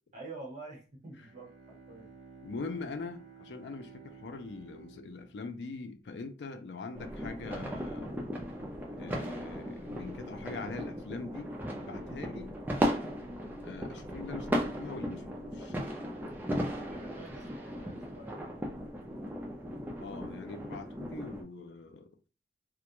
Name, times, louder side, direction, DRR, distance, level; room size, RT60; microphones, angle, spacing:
voice 1, 0.1-2.1 16.9-18.6, right 3 dB, 45° right, 0.9 m, -47 dB
Bowed string instrument, 1.0-6.7, right 6 dB, 75° right, 0.8 m, -54 dB
voice 2, 2.4-8.1 9.0-11.5 11.8-12.6 13.6-15.7 20.0-22.1, left 4 dB, 70° left, 0.4 m, -42 dB
sound 1, 6.9-21.4, equal, 10° right, 0.4 m, -36 dB
2.4 x 2.2 x 2.9 m
head